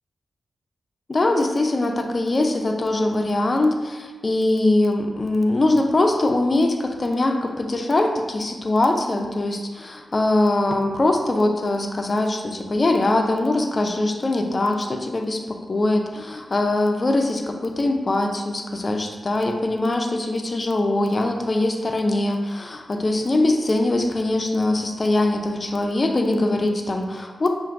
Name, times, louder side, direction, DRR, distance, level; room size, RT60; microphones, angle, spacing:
voice 1, 1.1-27.5, left 2 dB, 40° left, 3 dB, 0.5 m, -22 dB
5.7 x 2.6 x 2.5 m, 1.3 s
cardioid pair, 75°, 0 cm